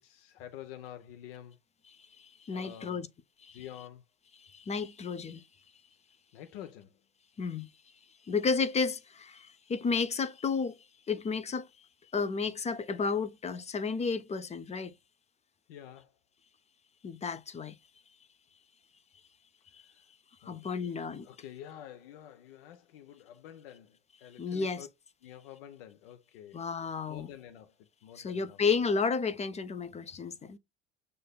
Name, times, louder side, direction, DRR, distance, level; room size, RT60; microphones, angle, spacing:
voice 1, 0.0-1.6 2.5-3.1 3.5-4.0 6.3-7.0 15.7-16.2 19.7-20.1 20.4-24.9 25.2-26.7 27.1-28.8, left 11 dB, 80° left, 0.6 m, -49 dB
voice 2, 2.2-3.1 3.5-3.6 4.4-5.4 7.4-7.7 8.2-10.8 11.1-11.9 12.1-14.9 17.0-17.8 19.7-19.8 20.4-21.3 24.4-24.9 26.5-27.3 28.2-30.6, left 5 dB, 25° left, 0.5 m, -32 dB
6.5 x 2.5 x 2.2 m
hypercardioid pair, 85°, 29 cm